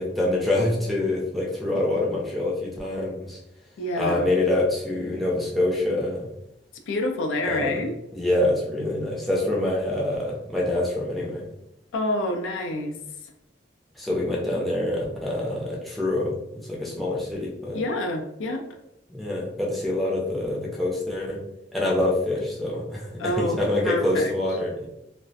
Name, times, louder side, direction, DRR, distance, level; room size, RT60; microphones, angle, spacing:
voice 1, 0.0-3.4 3.9-6.3 7.4-7.8 8.1-11.4 14.0-17.8 19.1-21.4 21.7-24.9, left 1 dB, ahead, -5 dB, 0.4 m, -26 dB
voice 2, 3.8-4.3 6.9-7.9 11.9-12.9 17.7-18.7 23.2-24.3, left 1 dB, 85° left, 3 dB, 0.4 m, -27 dB
2.3 x 2.1 x 2.6 m, 0.83 s
head